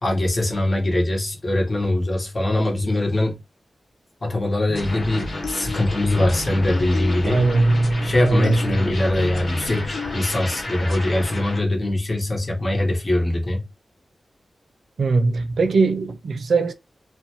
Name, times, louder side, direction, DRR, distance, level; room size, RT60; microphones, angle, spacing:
voice 1, 0.0-3.4 4.2-7.4 8.0-13.6, left 1 dB, 35° left, 1.0 m, -22 dB
sound 1, 4.7-10.7, left 5 dB, 90° left, 0.4 m, -35 dB
sound 2, 4.7-11.6, left 1 dB, 65° left, 1.2 m, -32 dB
voice 2, 7.2-8.7 15.0-16.7, right 3 dB, 85° right, 0.4 m, -20 dB
2.6 x 2.2 x 2.8 m
wide cardioid pair, 115°, 0 cm